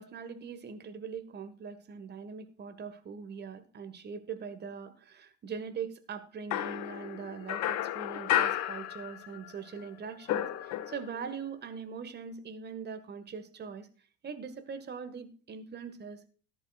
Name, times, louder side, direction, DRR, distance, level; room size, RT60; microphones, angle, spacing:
voice 1, 0.0-13.9 14.2-16.3, right 6 dB, 30° right, 10 dB, 1.7 m, -42 dB
sound 1, 6.5-9.5 9.8-11.3, left 12 dB, 50° left, 1.1 m, -32 dB
18.0 x 11.0 x 2.4 m, 0.39 s
figure-of-eight pair, 60°, 36 cm